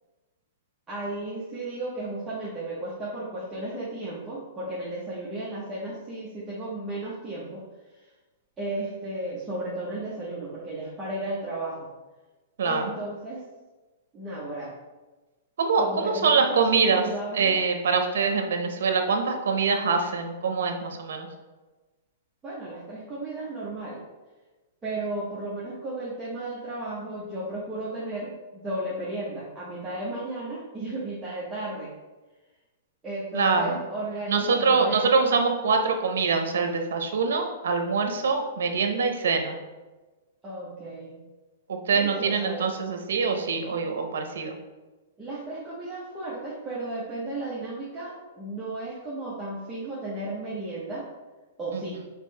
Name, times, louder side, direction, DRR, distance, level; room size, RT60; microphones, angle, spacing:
voice 1, 0.9-7.6 8.6-11.9 12.6-13.4 14.1-14.7 15.8-17.5 22.4-24.0 24.8-31.9 33.0-35.2 40.4-41.2 41.9-42.7 45.2-51.1 51.6-52.0, right 2 dB, 10° right, -9 dB, 0.9 m, -34 dB
voice 2, 12.6-12.9 15.6-17.0 17.3-21.3 33.3-33.8 34.3-39.6 41.7-44.6 51.7-51.8, right 5 dB, 80° right, 5 dB, 0.6 m, -24 dB
5.2 x 3.1 x 3.2 m, 1.2 s
hypercardioid pair, 155°, 0 cm